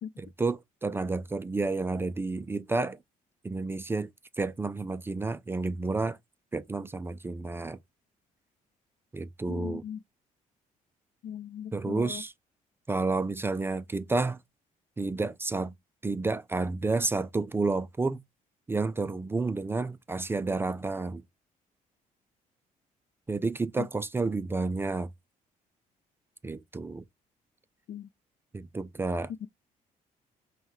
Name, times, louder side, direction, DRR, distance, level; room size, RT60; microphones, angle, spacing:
voice 1, 0.2-3.0 3.4-4.1 4.4-6.2 6.5-7.8 9.1-9.8 11.7-12.3 12.9-14.4 15.0-15.7 16.0-18.2 18.7-21.2 23.3-25.1 26.4-27.0 28.5-29.3, right 3 dB, 15° right, 0.3 m, -30 dB
voice 2, 9.5-10.0 11.2-12.2 23.8-23.9 27.9-28.1 29.4-29.5, left 9 dB, 65° left, 0.4 m, -39 dB
5.4 x 2.3 x 3.1 m
cardioid pair, 115°, 15 cm